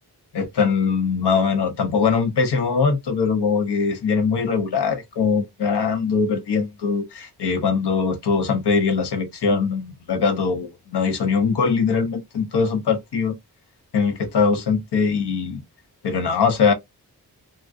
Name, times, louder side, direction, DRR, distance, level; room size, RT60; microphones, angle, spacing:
voice 1, 0.3-13.4 13.9-15.6 16.0-16.7, left 5 dB, 85° left, 0.8 m, -21 dB
3.6 x 2.1 x 2.5 m
wide cardioid pair, 135°, 39 cm